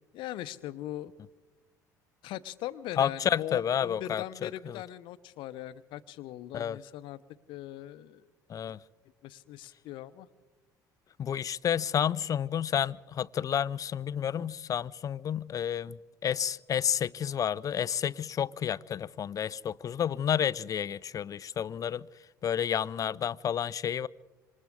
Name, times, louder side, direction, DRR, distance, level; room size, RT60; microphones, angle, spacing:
voice 1, 0.1-1.1 2.2-7.2 7.5-8.2 9.2-10.3, left 13 dB, 60° left, 0.9 m, -40 dB
voice 2, 3.0-4.8 6.5-6.8 8.5-8.8 11.2-22.1 22.4-24.1, left 9 dB, 35° left, 0.5 m, -30 dB
27.0 x 26.5 x 3.7 m
figure-of-eight pair, 60°, 10 cm